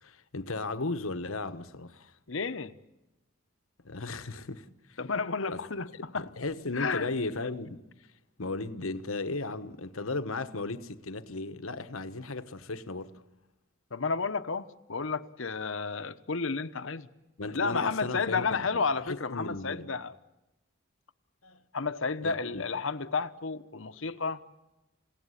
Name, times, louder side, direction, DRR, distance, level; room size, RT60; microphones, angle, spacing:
voice 1, 0.0-2.1 3.8-5.0 5.5-5.6 5.9-7.8 8.4-13.1 17.4-19.9 21.4-21.6 22.2-22.6, left 3 dB, 85° left, 1.3 m, -36 dB
voice 2, 2.3-2.7 5.0-6.3 6.7-7.1 13.9-17.1 17.5-20.1 21.7-24.4, left 4 dB, 65° left, 1.0 m, -32 dB
28.5 x 17.5 x 10.0 m
head